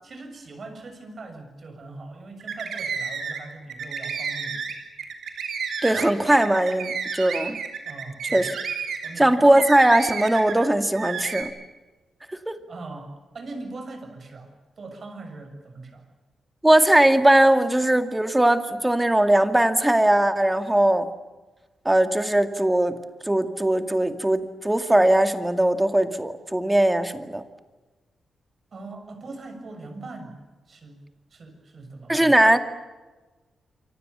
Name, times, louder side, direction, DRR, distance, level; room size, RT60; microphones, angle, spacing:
voice 1, 0.0-4.8 7.8-8.6 9.0-9.6 12.7-16.1 28.7-30.4 30.7-32.4, right 3 dB, 50° right, 6 dB, 6.9 m, -41 dB
sound 1, 2.4-3.4 3.7-10.7 10.9-11.4, right 6 dB, 75° right, 4.4 m, -31 dB
voice 2, 5.8-7.6 8.3-8.5 9.2-11.5 12.3-12.5 16.6-21.1 21.9-23.0 23.3-27.4 32.1-32.6, right 1 dB, 10° right, 8 dB, 2.2 m, -19 dB
28.5 x 24.5 x 7.0 m, 1.2 s
cardioid pair, 100°, 0 cm